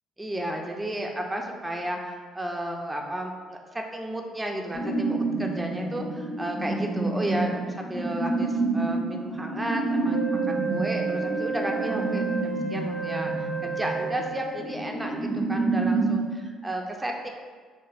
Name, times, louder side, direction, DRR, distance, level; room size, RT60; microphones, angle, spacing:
voice 1, 0.2-10.2 10.5-17.3, right 1 dB, 15° right, 1 dB, 0.4 m, -33 dB
sound 1, 4.7-16.2, right 2 dB, 90° left, 1.1 m, -28 dB
Wind instrument woodwind instrument, 10.1-14.8, right 5 dB, 55° left, 0.8 m, -31 dB
3.2 x 2.1 x 2.4 m, 1.5 s
hypercardioid pair, 50°, 0 cm